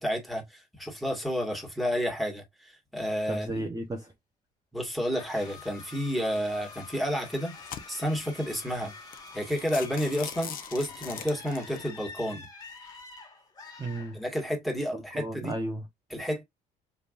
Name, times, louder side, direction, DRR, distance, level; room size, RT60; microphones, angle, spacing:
voice 1, 0.0-3.6 4.7-7.5 7.9-8.9 9.3-12.5 14.1-15.5 16.1-16.4, equal, ahead, 1.9 m, -31 dB
voice 2, 3.3-4.1 13.8-14.2 14.9-15.9, right 1 dB, 20° right, 1.0 m, -34 dB
sound 1, 5.1-14.6, left 4 dB, 20° left, 1.8 m, -47 dB
sound 2, 6.4-6.6 7.2-8.2 8.8-8.9 9.1-9.3 9.6-11.8, left 9 dB, 55° left, 0.9 m, -41 dB
5.0 x 3.5 x 2.5 m
cardioid pair, 110°, 17 cm